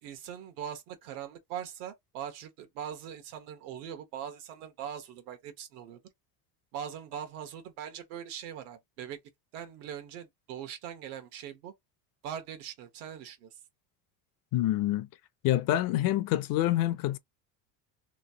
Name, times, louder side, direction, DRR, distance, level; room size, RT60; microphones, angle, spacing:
voice 1, 0.0-6.0 6.7-9.2 9.5-11.7 12.2-13.5, right 9 dB, 85° right, 1.1 m, -41 dB
voice 2, 14.5-15.1 15.4-17.2, left 14 dB, 55° left, 0.5 m, -26 dB
3.0 x 2.3 x 2.7 m
cardioid pair, 125°, 42 cm